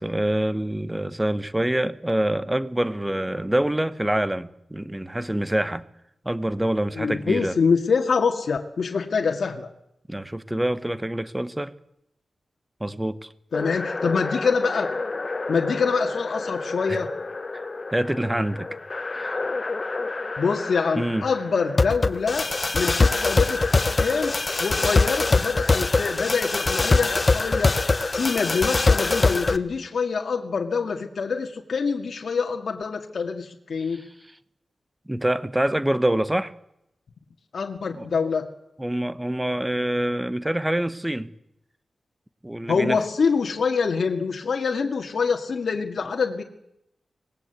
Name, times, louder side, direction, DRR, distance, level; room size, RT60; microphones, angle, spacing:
voice 1, 0.0-5.8 6.2-7.5 10.1-11.7 12.8-13.3 16.9-17.0 17.5-18.7 19.1-19.4 20.9-21.2 33.9-34.1 35.1-36.5 38.0-38.1 38.8-41.3 42.4-43.0, right 1 dB, 10° right, 1.1 m, -26 dB
voice 2, 7.0-9.7 13.5-14.9 15.5-17.1 20.4-22.5 22.7-27.9 28.1-34.0 37.5-38.5 42.7-46.4, left 5 dB, 65° left, 2.1 m, -25 dB
sound 1, 13.5-29.6, left 3 dB, 30° left, 1.0 m, -24 dB
26.5 x 20.0 x 8.2 m
wide cardioid pair, 140°, 0 cm